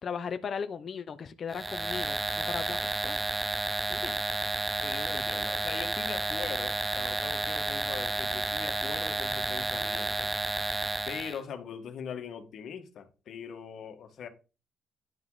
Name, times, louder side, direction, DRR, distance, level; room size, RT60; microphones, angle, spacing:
voice 1, 0.0-3.2 3.9-4.2, left 6 dB, 45° left, 0.9 m, -37 dB
sound 1, 1.5-11.4, right 2 dB, 15° right, 0.4 m, -31 dB
voice 2, 4.8-10.3 11.1-14.3, left 7 dB, 60° left, 1.8 m, -41 dB
10.5 x 5.6 x 4.1 m
cardioid pair, 120°, 0 cm